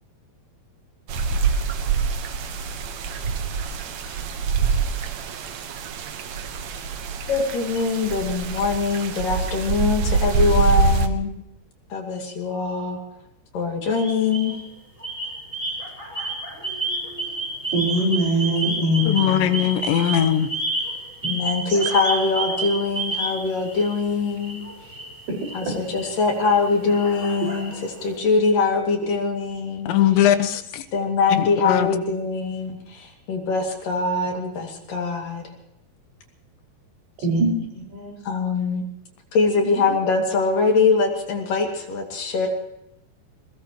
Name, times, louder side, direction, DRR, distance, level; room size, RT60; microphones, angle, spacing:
sound 1, 1.1-11.1, right 5 dB, 90° right, 1.5 m, -25 dB
voice 1, 7.3-11.3 11.9-13.0 13.5-14.5 21.3-24.6 25.5-27.7 28.0-30.0 30.9-35.4 38.3-38.8 39.3-42.5, left 4 dB, 55° left, 3.8 m, -23 dB
sound 2, 13.9-14.6 15.0-24.0 24.4-28.1, right 2 dB, 15° right, 5.5 m, -30 dB
voice 2, 17.7-19.5 21.7-21.8 25.6-25.7 37.2-38.2 39.6-39.7, equal, 70° right, 7.6 m, -23 dB
voice 3, 19.1-20.5 29.9-30.9 31.4-31.9, left 10 dB, 85° left, 3.3 m, -20 dB
21.5 x 21.0 x 3.1 m
omnidirectional pair, 5.1 m